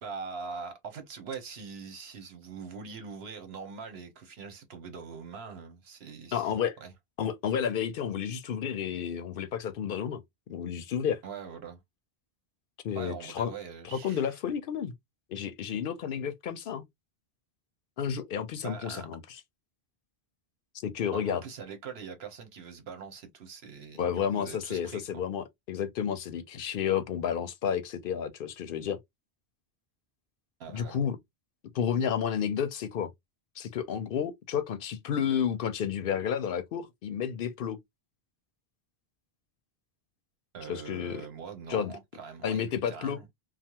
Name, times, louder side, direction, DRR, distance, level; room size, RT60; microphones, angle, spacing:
voice 1, 0.0-6.5 6.8-6.9 11.2-11.8 12.9-14.4 18.6-19.1 21.1-24.0 24.3-25.0 30.6-31.0 40.5-43.3, right 5 dB, 80° right, 1.1 m, -42 dB
voice 2, 6.3-6.8 7.2-10.2 10.5-11.2 12.8-13.5 13.9-14.9 15.3-16.8 18.0-19.2 20.8-21.4 23.9-29.0 30.7-31.2 31.7-33.1 33.6-37.8 40.7-41.2 41.7-41.9 42.4-43.2, left 8 dB, 65° left, 0.7 m, -31 dB
3.2 x 2.1 x 2.8 m
omnidirectional pair, 1.0 m